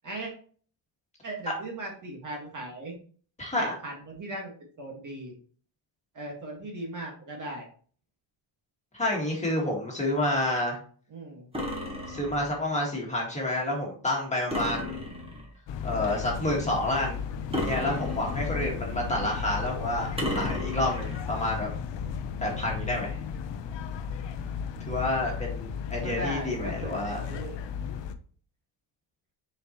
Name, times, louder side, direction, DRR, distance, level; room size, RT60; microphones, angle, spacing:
voice 1, 1.2-2.9 3.6-5.3 6.1-7.7 11.1-11.5 26.0-27.6, right 2 dB, 40° right, -1 dB, 1.8 m, -38 dB
voice 2, 3.4-3.7 8.9-10.8 12.1-15.0 15.8-17.2 17.6-21.7 22.4-23.2 24.9-27.2, left 1 dB, 15° left, -2 dB, 1.9 m, -29 dB
sound 1, 11.5-12.6 14.5-15.6 17.5-18.7 20.2-21.2, left 1 dB, 10° right, 1.3 m, -33 dB
sound 2, 15.7-28.1, left 7 dB, 65° left, 0.8 m, -35 dB
6.8 x 4.6 x 3.1 m, 0.43 s
cardioid pair, 165°, 47 cm